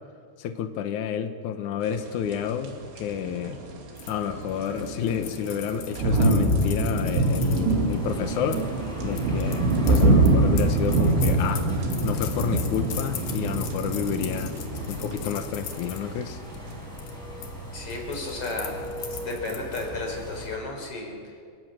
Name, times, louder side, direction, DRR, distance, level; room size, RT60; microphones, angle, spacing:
voice 1, 0.4-3.6 4.1-8.7 9.0-11.6 12.0-14.5 14.9-16.4, left 8 dB, 90° left, 7 dB, 1.7 m, -30 dB
sound 1, 2.2-3.8 4.0-16.3 16.7-16.8, right 2 dB, 90° right, 4.9 m, -24 dB
sound 2, 4.0-8.6 9.1-16.0 16.5-16.7 17.0-17.5 17.7-19.9, left 9 dB, 60° left, 2.9 m, -40 dB
sound 3, 7.2-20.6, equal, ahead, 6.2 m, -38 dB
voice 2, 17.7-18.8 19.1-21.2, left 3 dB, 35° left, 1 dB, 5.0 m, -33 dB
29.0 x 17.0 x 6.4 m, 2.2 s
omnidirectional pair, 5.1 m